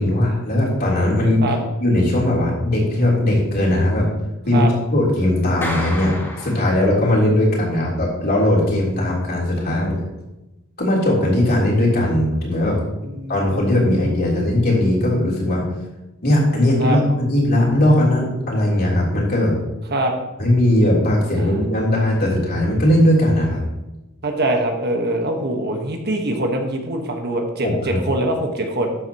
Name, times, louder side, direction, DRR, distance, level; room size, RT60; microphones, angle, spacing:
voice 1, 0.0-1.4 1.8-4.1 4.4-10.0 10.8-12.8 13.3-15.6 16.2-19.5 20.4-23.7 27.6-28.0, left 1 dB, 50° left, -4 dB, 3.4 m, -18 dB
Clapping, 5.6-7.3, left 1 dB, 10° left, 2.0 m, -31 dB
voice 2, 13.0-14.0 14.3-14.4 16.8-17.0 19.9-20.1 24.2-27.7 28.0-29.0, right 1 dB, 50° right, 3 dB, 1.3 m, -23 dB
12.5 x 7.9 x 2.9 m, 0.98 s
head